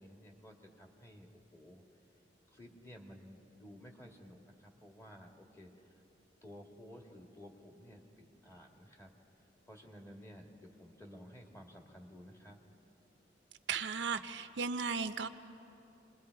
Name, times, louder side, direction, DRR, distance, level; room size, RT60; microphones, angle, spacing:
voice 1, 0.0-1.8 2.5-6.0 6.4-9.1 9.4-12.6, equal, 15° left, 2 dB, 1.9 m, -54 dB
voice 2, 13.7-15.3, right 5 dB, 75° right, 10 dB, 0.6 m, -35 dB
29.0 x 21.0 x 4.6 m, 2.9 s
head